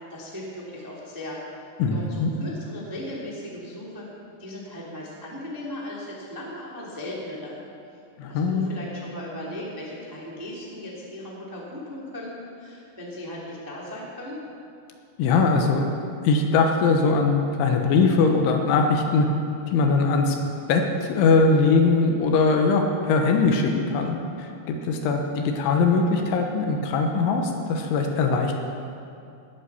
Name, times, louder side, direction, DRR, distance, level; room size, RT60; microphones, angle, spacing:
voice 1, 0.1-1.4 1.9-4.1 4.4-7.6 8.3-12.3 12.6-14.4, left 1 dB, 15° right, -5 dB, 0.6 m, -37 dB
voice 2, 1.8-2.3 8.2-8.7 15.2-15.9 16.2-19.3 19.7-20.4 20.7-28.5, left 4 dB, 75° left, 3 dB, 3.4 m, -21 dB
19.0 x 8.5 x 7.0 m, 2.6 s
omnidirectional pair, 5.9 m